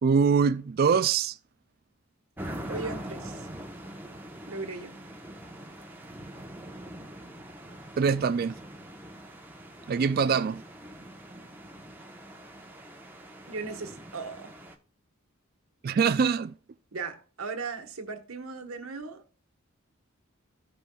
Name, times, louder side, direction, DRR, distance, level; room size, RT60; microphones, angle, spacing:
voice 1, 0.0-1.3 8.0-8.5 9.9-10.6 15.8-16.5, right 6 dB, 45° right, 0.3 m, -23 dB
sound 1, 2.4-14.7, right 1 dB, 10° right, 1.0 m, -43 dB
voice 2, 2.7-3.5 4.5-5.0 13.5-14.5 16.9-19.2, right 4 dB, 90° right, 1.3 m, -37 dB
15.0 x 5.3 x 2.3 m
head